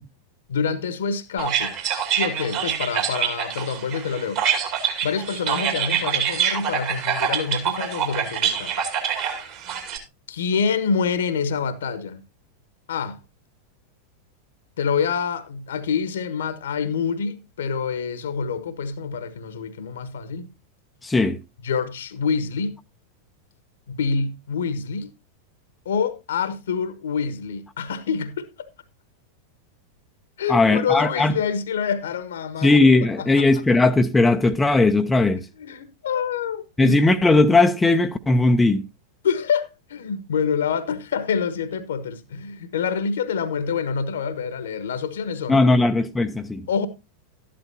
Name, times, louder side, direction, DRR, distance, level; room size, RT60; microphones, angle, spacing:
voice 1, 0.5-1.7 2.1-4.4 5.0-8.7 10.3-12.2 12.9-13.2 14.8-20.5 21.6-22.8 23.9-25.1 25.8-28.7 30.4-32.8 33.2-33.5 35.6-37.0 39.2-45.6 46.7-46.9, left 6 dB, 65° left, 1.2 m, -26 dB
sound 1, 1.4-10.0, right 8 dB, 45° right, 2.4 m, -25 dB
voice 2, 21.0-21.4 30.5-31.3 32.6-35.5 36.8-38.9 45.5-46.7, left 2 dB, 10° left, 0.7 m, -18 dB
12.5 x 11.5 x 2.7 m
figure-of-eight pair, 90°, 0 cm